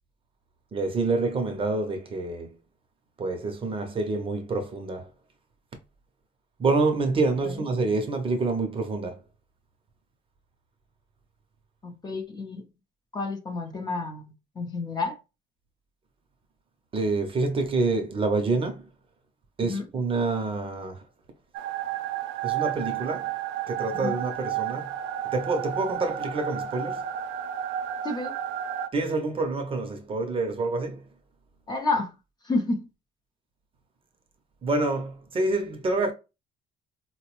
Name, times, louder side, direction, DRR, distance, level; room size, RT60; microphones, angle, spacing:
voice 1, 0.7-2.6 3.2-5.1 6.6-9.2 16.9-18.9 19.6-21.0 22.4-23.3 23.7-24.9 25.3-27.0 28.9-31.0 34.6-36.1, right 3 dB, 25° right, 0.6 m, -27 dB
voice 2, 11.8-12.6 13.1-14.2 14.6-15.1 19.7-19.8 24.0-24.1 28.0-28.3 31.7-32.1 32.5-32.8, left 3 dB, 20° left, 0.5 m, -29 dB
sound 1, 21.5-28.9, right 10 dB, 90° right, 0.4 m, -32 dB
4.2 x 2.0 x 2.9 m
cardioid pair, 155°, 20 cm